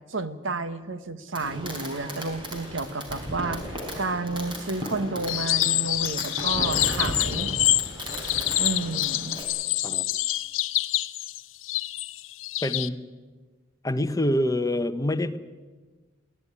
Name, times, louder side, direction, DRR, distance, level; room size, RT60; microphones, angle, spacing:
voice 1, 0.1-7.5 8.6-9.4, right 3 dB, 80° right, 12 dB, 1.3 m, -31 dB
Fireworks, 1.3-9.4, equal, 25° right, 4.9 m, -35 dB
sound 1, 5.3-12.9, left 16 dB, 85° left, 0.7 m, -26 dB
voice 2, 12.6-13.0 13.8-15.4, left 1 dB, 20° left, 11 dB, 0.9 m, -26 dB
23.0 x 15.5 x 9.7 m, 1.3 s
head